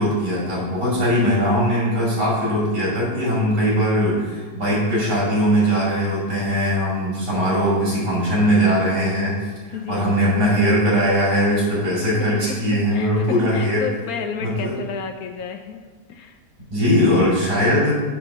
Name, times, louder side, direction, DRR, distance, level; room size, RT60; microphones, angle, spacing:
voice 1, 0.0-9.4 9.7-13.9 14.4-14.7 16.7-18.0, equal, 85° right, -6 dB, 3.2 m, -20 dB
voice 2, 9.7-10.1 12.2-12.6 12.9-15.8 16.1-16.4, left 6 dB, 70° left, 5 dB, 1.0 m, -31 dB
7.5 x 3.6 x 5.9 m, 1.4 s
omnidirectional pair, 1.7 m